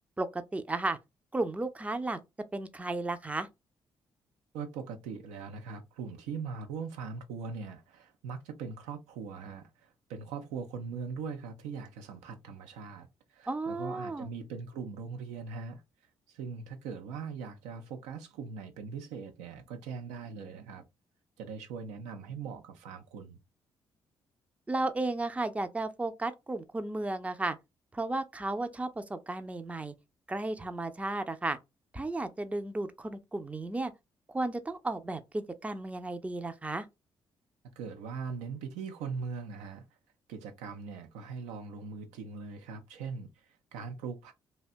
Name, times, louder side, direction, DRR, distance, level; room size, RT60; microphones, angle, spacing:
voice 1, 0.2-1.0 1.3-2.2 2.5-3.5 13.5-14.3 24.7-27.6 27.9-29.9 30.3-31.6 31.9-33.9 34.3-36.9, right 2 dB, 10° right, 0.4 m, -34 dB
voice 2, 4.5-15.8 16.3-20.8 21.4-23.4 37.8-39.8 40.3-43.4 43.7-44.3, right 5 dB, 75° right, 0.5 m, -41 dB
2.7 x 2.2 x 2.4 m
hypercardioid pair, 40°, 12 cm